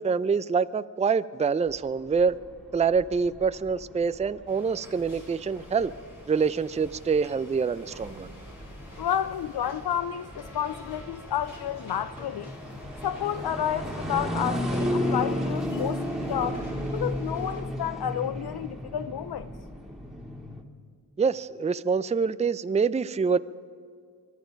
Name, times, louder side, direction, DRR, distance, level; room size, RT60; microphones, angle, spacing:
voice 1, 0.0-2.4 2.7-5.9 6.3-8.3 21.2-23.4, right 5 dB, 15° right, 0.4 m, -25 dB
sound 1, 1.7-20.6, equal, ahead, 2.5 m, -34 dB
sound 2, 4.5-17.6, left 1 dB, 50° left, 5.0 m, -47 dB
voice 2, 9.0-12.5 13.0-16.0 16.3-16.7 16.9-19.5, left 10 dB, 70° left, 0.5 m, -30 dB
24.0 x 11.5 x 5.2 m
cardioid pair, 45°, 41 cm